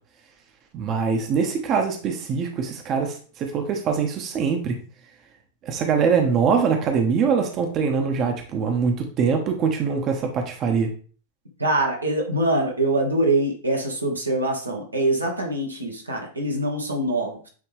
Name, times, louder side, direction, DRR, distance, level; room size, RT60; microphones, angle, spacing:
voice 1, 0.7-4.8 5.6-10.9, right 6 dB, 35° right, 3 dB, 1.1 m, -23 dB
voice 2, 11.6-17.5, right 1 dB, 85° right, 0 dB, 1.6 m, -24 dB
9.2 x 3.5 x 3.3 m, 0.41 s
figure-of-eight pair, 90°, 0 cm